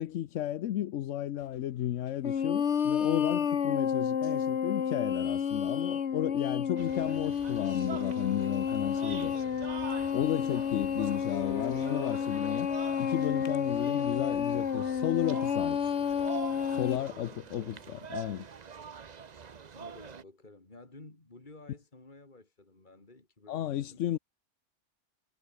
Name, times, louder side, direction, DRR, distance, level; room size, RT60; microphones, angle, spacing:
voice 1, 0.0-9.3 10.1-12.7 13.0-15.9 16.7-18.5 23.5-24.2, left 12 dB, 85° left, 1.0 m, -33 dB
sound 1, 2.2-17.0, left 7 dB, 65° left, 1.4 m, -30 dB
sound 2, 6.8-20.2, right 6 dB, 40° right, 0.9 m, -45 dB
voice 2, 13.7-14.6 16.9-17.8 19.7-24.0, left 2 dB, 40° left, 3.4 m, -53 dB
omnidirectional pair, 1.2 m